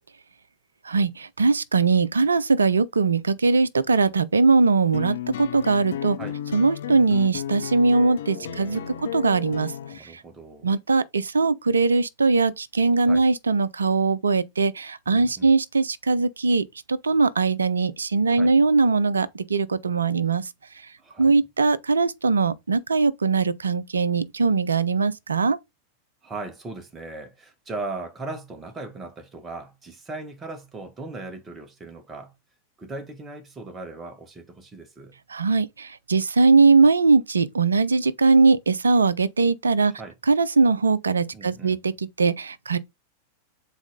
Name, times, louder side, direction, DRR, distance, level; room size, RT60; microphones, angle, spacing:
voice 1, 0.8-6.2 6.5-10.2 10.6-20.5 21.2-25.6 35.3-39.9 40.3-42.8, right 4 dB, 75° right, 0.6 m, -21 dB
sound 1, 4.9-10.0, left 11 dB, 60° left, 0.6 m, -34 dB
voice 2, 8.3-9.1 9.9-10.7 13.0-13.2 15.1-15.5 18.3-18.5 21.0-21.4 26.2-32.3 32.8-35.2 40.0-40.1 41.3-41.9, right 3 dB, 20° right, 1.7 m, -38 dB
7.1 x 4.2 x 3.8 m
figure-of-eight pair, 90°, 0 cm